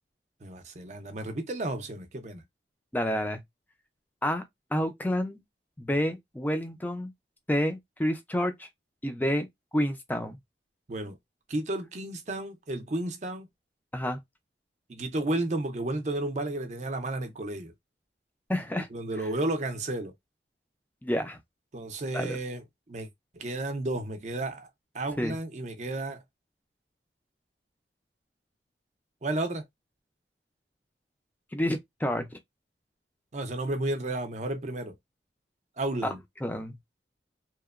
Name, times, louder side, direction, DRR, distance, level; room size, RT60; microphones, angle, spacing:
voice 1, 0.4-2.4 10.9-11.2 11.5-13.5 14.9-17.7 18.9-20.1 21.7-23.1 23.3-24.7 24.9-26.2 29.2-29.7 33.3-35.0 35.8-36.2, right 2 dB, 40° right, 0.6 m, -32 dB
voice 2, 2.9-3.4 4.2-4.4 4.7-5.4 5.8-7.1 7.5-8.7 9.0-9.5 9.7-10.4 13.9-14.2 18.5-18.9 21.0-21.4 22.1-22.4 25.2-25.4 31.5-32.4 36.0-36.1 36.4-36.7, equal, 10° left, 0.4 m, -29 dB
2.9 x 2.1 x 2.4 m
head